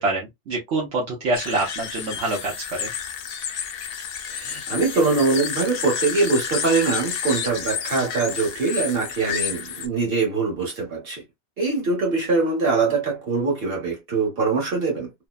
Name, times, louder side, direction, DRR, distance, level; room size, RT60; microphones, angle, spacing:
voice 1, 0.0-2.5 2.8-2.9, right 2 dB, 75° right, 1.1 m, -25 dB
sound 1, 1.3-9.9, left 7 dB, 60° left, 0.6 m, -30 dB
voice 2, 4.3-11.2 11.6-15.1, right 4 dB, 55° right, 1.6 m, -23 dB
3.1 x 2.1 x 2.3 m
omnidirectional pair, 1.2 m